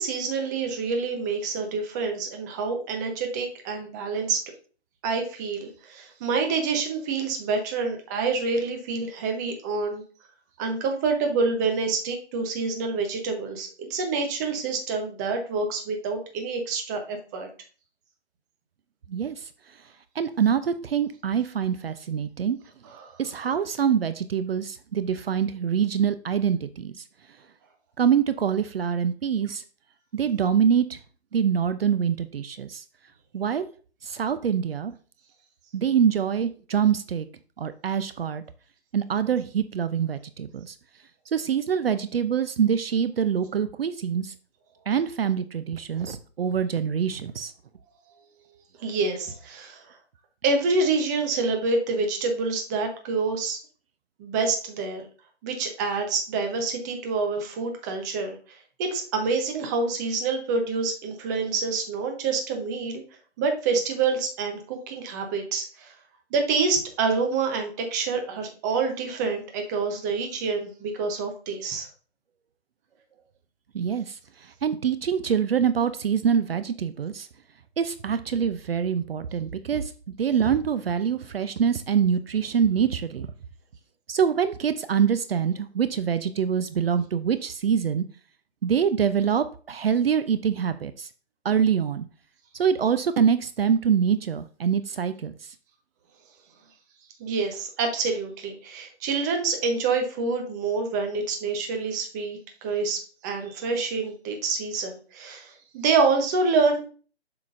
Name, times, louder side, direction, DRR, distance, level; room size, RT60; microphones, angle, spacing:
voice 1, 0.0-4.4 5.0-10.0 10.6-17.5 23.0-23.1 48.8-50.0 50.4-53.6 54.2-55.1 55.4-58.4 58.8-63.0 63.4-65.9 66.3-71.9 97.2-106.8, right 4 dB, 15° right, 4 dB, 0.8 m, -27 dB
voice 2, 19.1-19.5 20.2-22.6 23.2-27.0 28.0-29.6 30.1-31.0 31.3-32.8 33.3-33.7 34.0-34.9 35.7-37.3 37.6-38.4 38.9-40.8 41.3-44.3 44.9-47.5 73.7-77.3 77.8-83.3 84.1-88.0 88.6-91.1 91.4-92.0 92.5-95.5, right 7 dB, 60° right, 12 dB, 0.6 m, -25 dB
7.5 x 5.9 x 2.5 m, 0.39 s
figure-of-eight pair, 150°, 34 cm